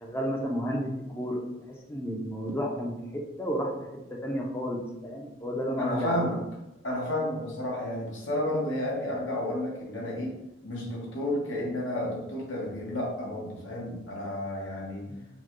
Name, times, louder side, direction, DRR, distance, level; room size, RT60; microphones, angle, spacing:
voice 1, 0.0-1.4 1.9-2.9 3.4-3.7 4.1-6.3 15.1-15.2, equal, 15° left, 0 dB, 0.6 m, -31 dB
voice 2, 5.8-6.4 6.8-10.3 10.6-15.1, left 1 dB, 70° left, -3 dB, 1.2 m, -31 dB
4.3 x 2.2 x 3.0 m, 0.90 s
head